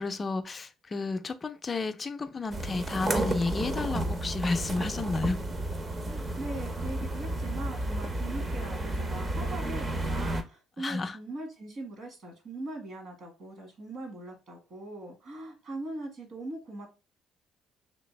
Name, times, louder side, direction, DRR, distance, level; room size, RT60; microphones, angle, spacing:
voice 1, 0.0-5.4 10.8-11.2, left 3 dB, 30° left, 0.4 m, -31 dB
sound 1, 2.5-10.4, right 1 dB, 30° right, 0.6 m, -32 dB
voice 2, 6.0-16.9, right 2 dB, 60° right, 1.6 m, -40 dB
3.3 x 2.8 x 3.1 m
cardioid pair, 100°, 0 cm